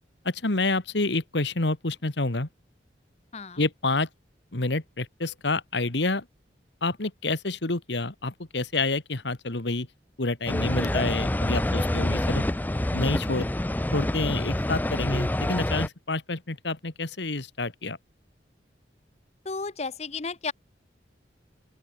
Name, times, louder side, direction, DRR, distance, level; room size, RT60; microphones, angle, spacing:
voice 1, 0.3-2.5 3.6-4.1 4.5-6.3 6.8-9.9 10.2-12.5 12.9-13.5 13.9-18.0, left 2 dB, 70° left, 1.8 m, -28 dB
sound 1, 10.5-15.9, left 1 dB, 10° left, 0.4 m, -27 dB
voice 2, 19.4-20.5, left 4 dB, 35° left, 0.7 m, -33 dB
open air
head